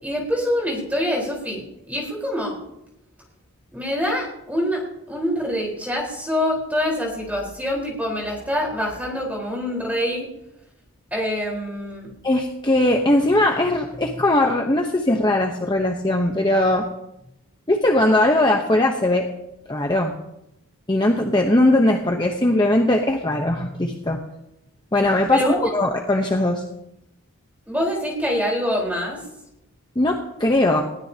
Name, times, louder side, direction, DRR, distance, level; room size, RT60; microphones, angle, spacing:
voice 1, 0.0-2.6 3.7-10.3 11.1-12.1 25.3-25.7 27.7-29.2, equal, 5° right, -2 dB, 4.3 m, -25 dB
voice 2, 12.2-16.9 17.7-19.3 19.7-20.1 20.9-24.2 24.9-26.6 30.0-30.8, left 1 dB, 20° left, 2 dB, 1.0 m, -19 dB
21.0 x 16.5 x 2.9 m, 0.86 s
head